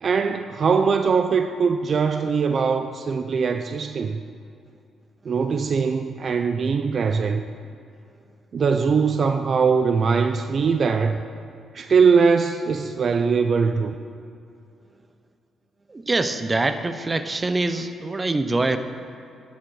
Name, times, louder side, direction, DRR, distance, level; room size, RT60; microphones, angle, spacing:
voice 1, 0.0-4.2 5.2-7.4 8.5-11.2 11.7-14.0, right 5 dB, 50° right, 8 dB, 0.5 m, -21 dB
voice 2, 15.9-18.8, right 2 dB, 25° right, 10 dB, 0.8 m, -24 dB
11.5 x 9.5 x 6.4 m, 2.6 s
cardioid pair, 90°, 0 cm